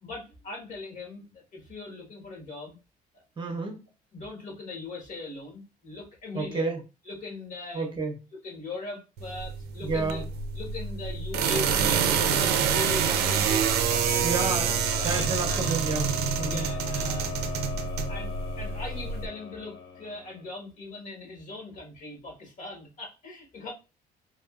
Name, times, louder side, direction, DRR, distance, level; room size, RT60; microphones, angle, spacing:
voice 1, 0.0-2.8 3.1-3.5 4.1-6.7 7.1-8.0 8.4-10.2 10.5-14.5 15.0-15.8 16.4-17.3 18.1-23.7, left 3 dB, 50° left, 0 dB, 1.4 m, -40 dB
voice 2, 3.4-3.8 6.3-6.8 7.7-8.1 9.8-10.3 14.2-16.1 16.4-16.7, right 3 dB, 30° right, 2 dB, 0.8 m, -30 dB
sound 1, 9.2-19.3, right 7 dB, 75° right, 0.5 m, -27 dB
sound 2, 11.7-20.6, left 5 dB, 30° left, 0.9 m, -39 dB
3.6 x 2.5 x 2.4 m, 0.29 s
cardioid pair, 105°, 17 cm